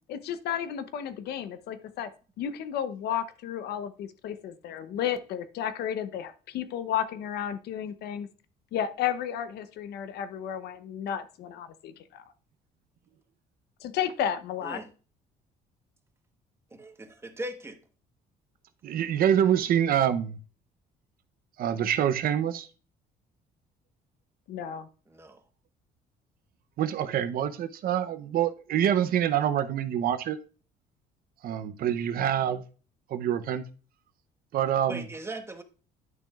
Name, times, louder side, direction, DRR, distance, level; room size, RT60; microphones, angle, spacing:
voice 1, 0.1-2.1 2.4-8.3 8.7-12.2 13.8-14.8 24.5-24.9, left 9 dB, 75° left, 0.7 m, -33 dB
voice 2, 16.7-17.8 25.1-25.4 34.9-35.6, right 1 dB, 15° right, 1.1 m, -39 dB
voice 3, 18.8-20.4 21.6-22.7 26.8-30.4 31.4-32.6 33.1-33.6 34.5-35.0, right 10 dB, 60° right, 0.7 m, -26 dB
10.5 x 6.0 x 2.4 m
cardioid pair, 110°, 17 cm